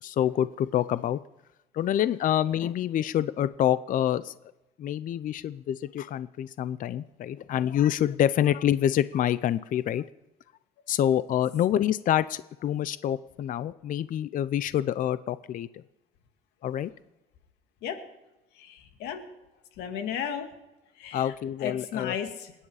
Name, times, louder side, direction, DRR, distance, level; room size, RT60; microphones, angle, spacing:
voice 1, 0.0-1.2 1.7-4.3 4.8-10.0 10.9-15.8 16.6-16.9 21.1-22.2, left 11 dB, 50° left, 15 dB, 0.6 m, -27 dB
voice 2, 18.6-19.2 19.8-20.5 21.0-21.3 21.6-22.5, left 8 dB, 90° left, 6 dB, 2.3 m, -34 dB
28.0 x 9.9 x 4.9 m, 0.99 s
cardioid pair, 110°, 17 cm